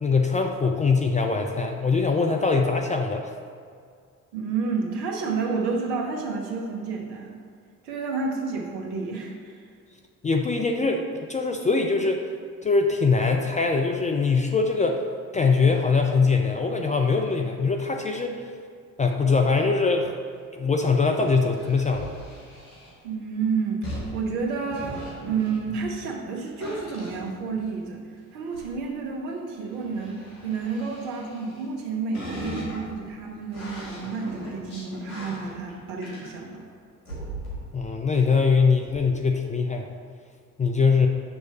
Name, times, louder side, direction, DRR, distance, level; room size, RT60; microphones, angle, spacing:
voice 1, 0.0-3.3 10.2-12.2 12.6-15.0 15.3-18.4 19.0-20.1 20.5-22.1 37.7-39.9 40.6-41.1, left 4 dB, 20° left, 2 dB, 0.4 m, -22 dB
voice 2, 4.3-7.4 7.8-9.6 23.0-28.0 28.3-36.6, right 4 dB, 65° right, 0 dB, 1.1 m, -30 dB
sound 1, 21.1-23.0 23.8-26.2 26.6-27.9 28.4-28.7 29.7-31.8 32.1-36.6 37.1-37.8 38.1-38.2 38.7-39.0, right 1 dB, 80° left, 1.6 m, -39 dB
6.4 x 3.1 x 5.4 m, 2.2 s
figure-of-eight pair, 50°, 43 cm